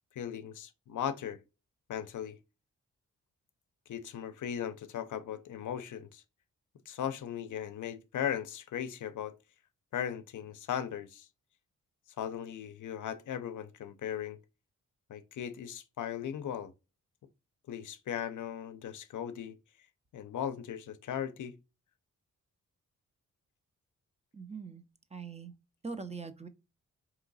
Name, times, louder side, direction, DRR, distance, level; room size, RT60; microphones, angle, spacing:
voice 1, 0.2-1.4 1.9-2.4 3.9-6.2 6.9-9.3 9.9-11.3 12.2-14.4 15.1-16.7 17.7-19.5 20.1-21.5, left 9 dB, 65° left, 0.5 m, -37 dB
voice 2, 24.3-24.8 25.1-25.6 25.8-26.5, right 4 dB, 20° right, 0.5 m, -42 dB
3.7 x 2.9 x 3.9 m
cardioid pair, 60°, 32 cm